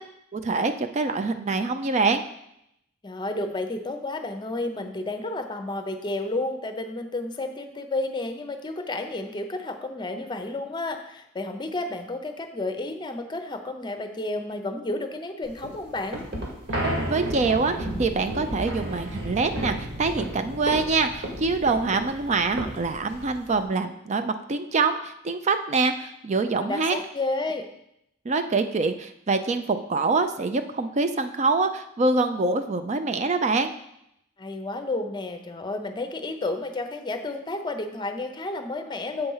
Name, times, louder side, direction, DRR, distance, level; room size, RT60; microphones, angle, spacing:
voice 1, 0.3-2.2 17.1-27.0 28.3-33.7, right 3 dB, 35° right, 8 dB, 0.4 m, -25 dB
voice 2, 3.0-16.2 26.6-27.7 34.4-39.3, left 2 dB, 25° left, 7 dB, 0.7 m, -31 dB
sound 1, 15.5-23.6, right 1 dB, 70° right, 2.0 m, -32 dB
7.8 x 4.3 x 5.5 m, 0.78 s
head